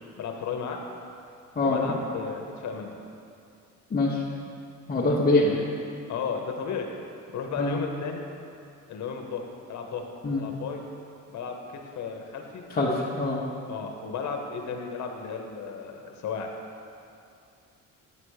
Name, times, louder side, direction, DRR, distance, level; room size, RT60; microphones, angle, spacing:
voice 1, 0.2-0.8 1.6-3.0 5.0-5.6 6.1-6.9 7.3-8.2 8.9-9.4 9.7-10.0 10.3-10.8 11.3-11.6 11.9-12.6 13.7-16.5, left 6 dB, 70° left, 3 dB, 1.0 m, -34 dB
voice 2, 3.9-4.2 4.9-5.4 7.6-7.7 10.2-10.4 12.7-13.4, left 2 dB, 30° left, -6 dB, 1.0 m, -24 dB
8.6 x 4.3 x 6.5 m, 2.5 s
cardioid pair, 90°, 30 cm